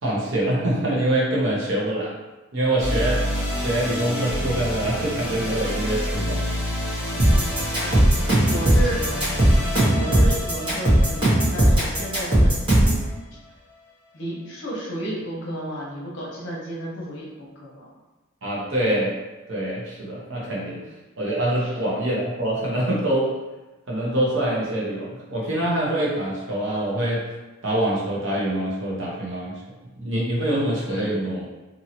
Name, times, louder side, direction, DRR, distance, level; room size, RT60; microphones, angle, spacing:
voice 1, 0.0-2.1 2.5-6.4 18.4-19.1 19.5-20.8 21.2-23.3 23.9-27.2 27.6-29.5 30.0-31.5, right 1 dB, 65° right, -5 dB, 0.9 m, -25 dB
sound 1, 2.8-13.2, equal, 5° right, 0.8 m, -29 dB
voice 2, 7.1-9.4 9.8-12.5 14.1-17.9 20.7-20.8 21.6-21.7 30.9-31.2, right 1 dB, 60° left, -4 dB, 0.9 m, -33 dB
sound 2, 7.2-13.0, right 1 dB, 25° right, 1.1 m, -17 dB
2.8 x 2.7 x 2.8 m, 1.1 s
head